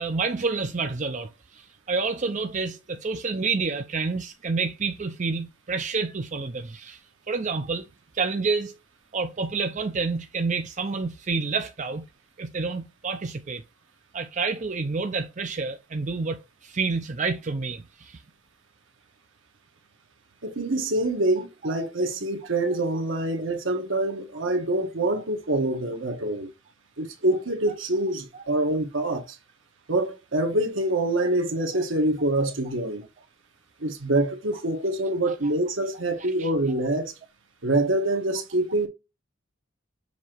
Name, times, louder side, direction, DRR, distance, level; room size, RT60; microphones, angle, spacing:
voice 1, 0.0-7.0 7.3-7.9 8.1-8.8 9.1-12.0 12.4-13.6 14.1-18.2 28.3-28.4 31.2-31.3 31.7-31.8 36.2-36.5, right 4 dB, 40° right, 0.6 m, -29 dB
voice 2, 20.4-26.5 27.0-29.4 29.9-33.0 33.8-37.1 37.6-38.9, right 1 dB, 70° right, 1.5 m, -25 dB
7.2 x 2.9 x 4.5 m
head